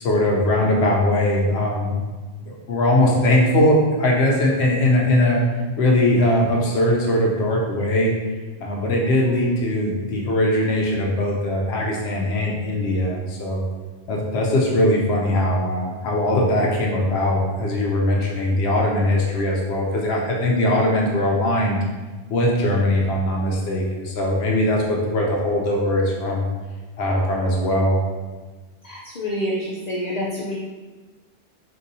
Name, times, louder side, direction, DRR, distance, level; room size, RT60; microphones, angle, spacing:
voice 1, 0.0-2.0 2.4-5.4 5.8-8.1 8.6-13.6 14.1-21.8 22.3-26.4 27.0-28.0, left 1 dB, 90° left, -2 dB, 0.9 m, -20 dB
voice 2, 28.8-30.6, equal, 55° left, -4 dB, 0.5 m, -27 dB
3.8 x 2.6 x 2.7 m, 1.3 s
omnidirectional pair, 1.1 m